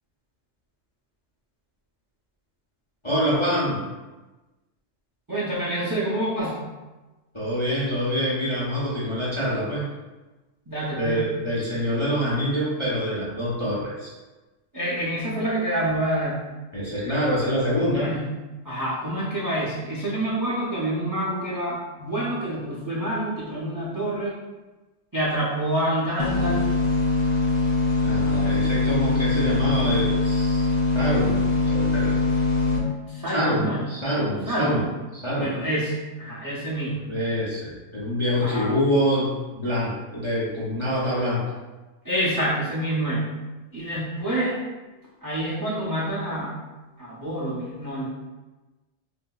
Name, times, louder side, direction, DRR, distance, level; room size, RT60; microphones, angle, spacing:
voice 1, 3.0-3.9 7.3-9.8 11.0-14.1 16.7-18.1 28.0-30.7 30.9-32.1 33.3-34.8 35.1-35.6 37.1-41.4, equal, 30° left, -9 dB, 0.6 m, -25 dB
voice 2, 5.3-6.5 10.7-11.3 14.7-16.4 17.9-18.2 18.6-24.3 25.1-26.7 33.1-33.8 34.5-34.9 35.3-35.9 36.2-37.1 38.4-38.7 42.0-43.2 43.7-44.5 45.2-46.5 47.0-48.1, right 1 dB, 25° right, -8 dB, 0.4 m, -27 dB
sound 1, 26.2-32.8, left 3 dB, 85° left, 0.3 m, -22 dB
3.7 x 2.6 x 2.2 m, 1.2 s
omnidirectional pair, 1.3 m